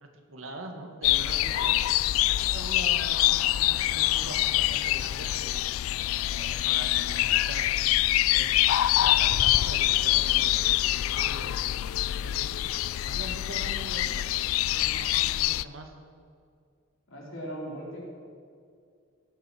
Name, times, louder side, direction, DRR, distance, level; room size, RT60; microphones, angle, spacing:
voice 1, 0.0-1.8 2.3-5.6 6.1-7.7 8.3-8.6 9.0-10.5 11.1-11.5 12.2-12.5 13.0-14.2 14.7-15.9, right 2 dB, 85° right, 4 dB, 1.8 m, -43 dB
sound 1, 1.0-15.6, left 15 dB, 90° left, 0.3 m, -25 dB
voice 2, 17.1-18.0, equal, 75° left, -4 dB, 4.1 m, -38 dB
17.0 x 7.5 x 6.2 m, 2.3 s
head